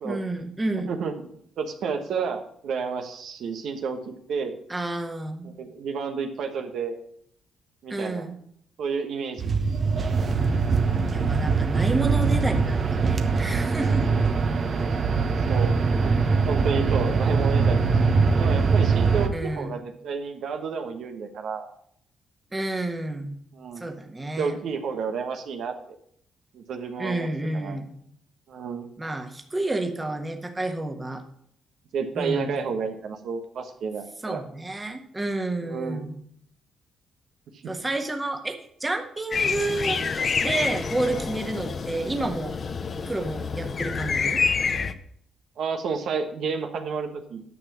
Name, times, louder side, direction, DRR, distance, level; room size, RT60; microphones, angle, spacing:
voice 1, 0.0-0.9 4.7-5.5 7.9-8.3 11.1-14.1 19.3-19.7 22.5-23.3 23.8-24.6 27.0-28.0 29.0-31.2 32.1-32.5 34.2-36.2 37.7-40.0 40.4-42.5 43.1-44.4, right 2 dB, 15° right, 4 dB, 1.4 m, -30 dB
voice 2, 0.9-1.3 1.6-4.6 5.4-7.0 7.8-8.3 8.8-9.5 14.3-14.6 15.5-16.1 16.5-17.8 18.4-21.7 23.5-23.9 24.4-25.7 26.5-27.3 27.5-27.8 28.5-28.9 31.9-34.4 35.6-36.1 37.6-37.7 45.6-47.4, right 5 dB, 70° right, 5 dB, 1.3 m, -31 dB
sound 1, 9.4-19.3, right 4 dB, 45° right, 1.0 m, -22 dB
sound 2, 39.3-44.9, left 5 dB, 40° left, 0.7 m, -27 dB
9.9 x 5.9 x 6.2 m, 0.66 s
cardioid pair, 90°, 0 cm